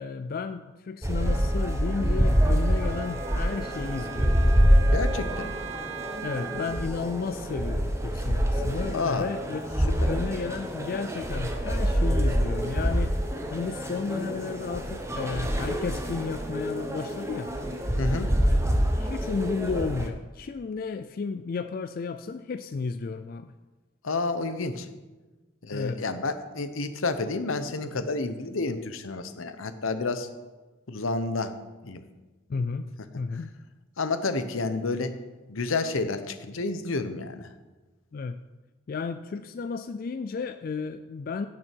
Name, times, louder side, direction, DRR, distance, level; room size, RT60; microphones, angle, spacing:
voice 1, 0.0-4.3 6.2-9.6 10.1-13.2 13.5-17.5 18.4-18.6 18.9-23.5 25.7-26.0 32.5-32.9 33.2-33.5 38.1-38.4 38.9-41.5, left 4 dB, 45° left, 9 dB, 0.3 m, -33 dB
sound 1, 1.0-20.1, equal, 15° right, 0.8 m, -26 dB
Wind instrument woodwind instrument, 1.2-6.9, right 7 dB, 75° right, 0.7 m, -41 dB
voice 2, 4.9-5.5 8.9-9.3 10.0-10.1 18.0-18.3 24.0-24.9 25.6-30.3 30.9-31.5 31.8-32.0 34.0-35.1 35.5-37.5, left 3 dB, 80° left, 10 dB, 0.9 m, -30 dB
16.0 x 6.2 x 4.6 m, 1.2 s
head